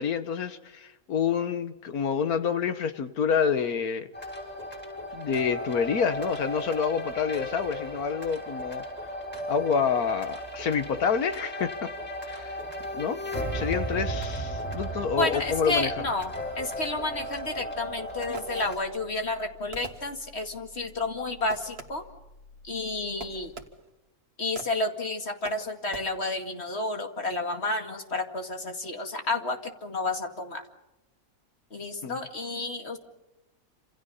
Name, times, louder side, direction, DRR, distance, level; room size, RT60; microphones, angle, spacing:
voice 1, 0.0-4.1 5.1-8.8 9.5-11.9 12.2-12.6 12.9-13.2 13.5-15.9 32.0-32.2, left 6 dB, 85° left, 10 dB, 1.7 m, -28 dB
sound 1, 4.1-18.8, equal, 5° left, 5.7 m, -35 dB
voice 2, 15.2-22.0 22.6-23.5 24.4-30.6 31.7-33.0, left 2 dB, 45° left, 4 dB, 2.5 m, -31 dB
sound 2, 15.4-23.5, left 2 dB, 65° left, 6.6 m, -53 dB
Fireworks, 18.3-19.0 19.7-20.6 21.5-22.2 23.2-24.1 24.6-25.0 25.4-26.0, right 4 dB, 45° right, 1.9 m, -44 dB
28.5 x 27.0 x 5.6 m, 0.99 s
omnidirectional pair, 1.5 m